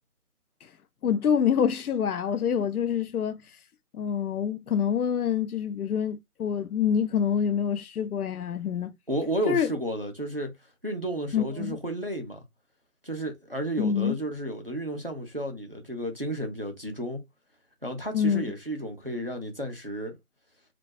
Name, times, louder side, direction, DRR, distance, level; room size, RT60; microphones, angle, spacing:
voice 1, 1.0-3.4 3.9-8.9 9.5-9.7 11.3-11.8 13.8-14.2 18.1-18.4, left 8 dB, 75° left, 0.5 m, -26 dB
voice 2, 9.1-10.5 10.8-12.4 13.0-17.2 17.8-20.2, right 1 dB, 40° right, 0.4 m, -32 dB
2.2 x 2.2 x 2.7 m
figure-of-eight pair, 160°, 45 cm